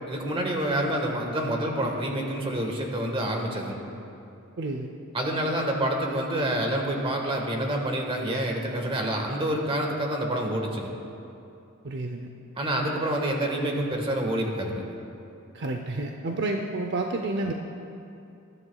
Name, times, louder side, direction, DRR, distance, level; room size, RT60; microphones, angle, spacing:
voice 1, 0.1-3.8 5.1-10.9 12.6-14.8, right 1 dB, 25° right, 1 dB, 1.5 m, -27 dB
voice 2, 4.6-4.9 11.8-12.3 15.5-17.5, right 2 dB, 55° right, 4 dB, 0.6 m, -30 dB
20.5 x 13.0 x 2.3 m, 2.7 s
head